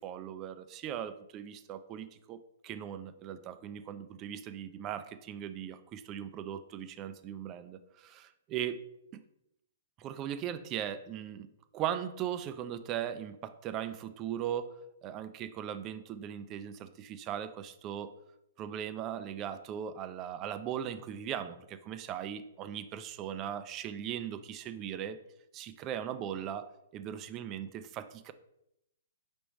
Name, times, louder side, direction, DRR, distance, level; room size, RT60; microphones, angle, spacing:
voice 1, 0.0-2.4 2.6-8.8 9.1-9.2 10.0-11.5 11.7-14.7 15.0-18.1 18.6-25.2 25.5-26.7 26.9-28.3, right 10 dB, 30° right, 11 dB, 0.4 m, -38 dB
5.1 x 3.5 x 3.0 m, 0.82 s
hypercardioid pair, 140°, 0 cm